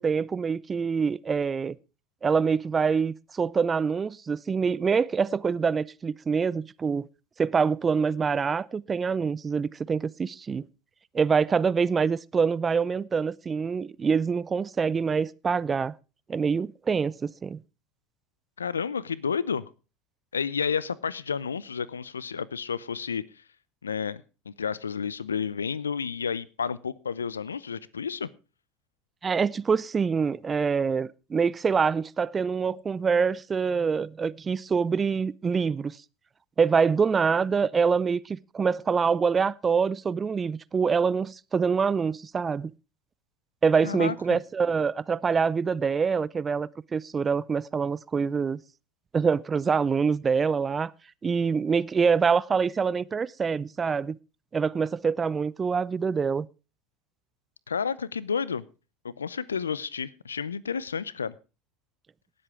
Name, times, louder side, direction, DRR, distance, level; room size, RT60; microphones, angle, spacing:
voice 1, 0.0-1.7 2.2-7.1 7.4-10.6 11.1-15.9 16.3-17.6 29.2-36.0 36.6-42.7 43.6-48.6 49.1-50.9 51.2-54.2 54.5-56.5, right 5 dB, 25° right, 0.6 m, -25 dB
voice 2, 18.6-19.7 20.3-23.2 23.8-28.3 43.8-44.4 57.7-58.6 59.0-61.3, left 6 dB, 90° left, 0.6 m, -31 dB
18.0 x 7.8 x 4.8 m
hypercardioid pair, 75°, 0 cm